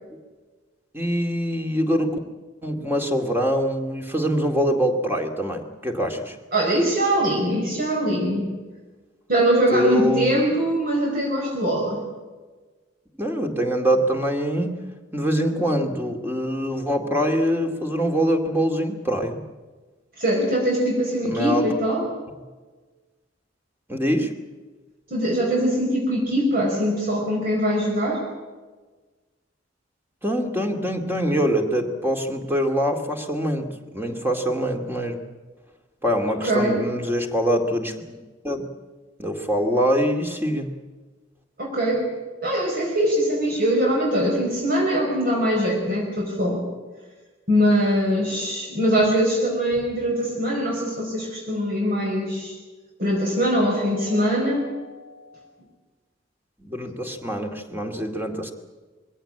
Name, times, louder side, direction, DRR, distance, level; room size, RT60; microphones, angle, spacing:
voice 1, 0.9-2.2 2.6-6.4 9.7-10.3 13.2-14.9 15.1-19.4 21.2-21.7 23.9-24.3 30.2-35.2 36.0-38.0 38.4-38.7 39.2-40.8 56.6-58.5, equal, 10° right, 3 dB, 2.3 m, -24 dB
voice 2, 6.5-8.5 9.3-12.0 20.2-22.0 25.1-28.2 36.5-36.8 41.6-42.1 42.4-46.6 47.5-52.6 53.0-55.1, equal, 50° right, -2 dB, 5.0 m, -22 dB
22.0 x 17.0 x 8.9 m, 1.3 s
head